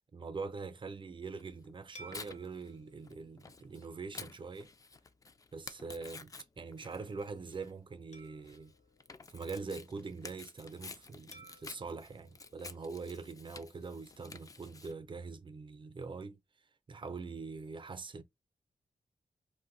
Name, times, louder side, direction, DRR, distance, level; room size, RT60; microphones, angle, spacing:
voice 1, 0.1-4.7 5.5-8.7 9.3-16.4 16.9-18.2, right 4 dB, 40° right, 0.5 m, -43 dB
Tearing, 1.4-14.9, left 4 dB, 25° left, 0.3 m, -51 dB
sound 1, 1.9-4.6 5.2-5.4 8.1-9.9 11.3-13.6, right 1 dB, 65° left, 0.8 m, -59 dB
2.6 x 2.1 x 3.7 m
wide cardioid pair, 90°, 13 cm